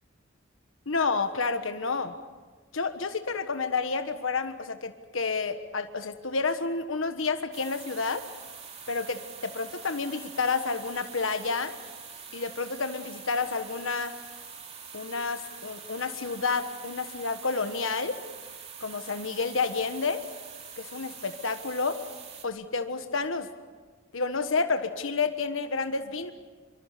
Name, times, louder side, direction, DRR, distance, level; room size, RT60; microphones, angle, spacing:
voice 1, 0.9-2.1 2.7-8.2 8.9-11.7 12.3-14.1 14.9-18.2 18.8-20.2 20.8-22.0 22.4-23.5 24.1-26.3, left 4 dB, 80° left, 8 dB, 1.4 m, -30 dB
sound 1, 7.5-22.5, right 6 dB, 35° right, 3.0 m, -45 dB
26.5 x 24.0 x 6.8 m, 1.4 s
head